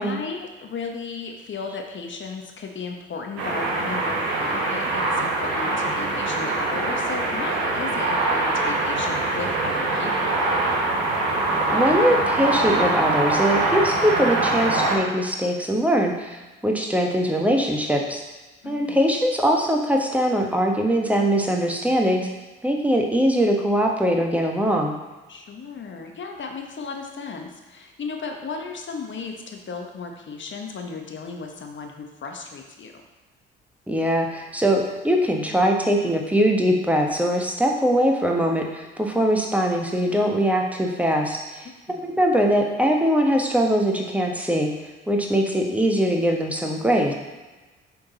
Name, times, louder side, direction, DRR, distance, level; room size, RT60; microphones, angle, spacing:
voice 1, 0.0-10.5 18.6-19.0 25.3-33.0 41.6-42.0, left 4 dB, 40° left, 3 dB, 1.0 m, -35 dB
sound 1, 3.4-15.0, right 2 dB, 75° right, 1.1 m, -23 dB
voice 2, 11.7-18.2 18.6-22.3 22.6-24.9 33.9-41.7 42.0-44.7 45.1-47.1, equal, 5° right, 1 dB, 1.1 m, -22 dB
6.9 x 3.8 x 4.0 m, 1.2 s
figure-of-eight pair, 50°, 31 cm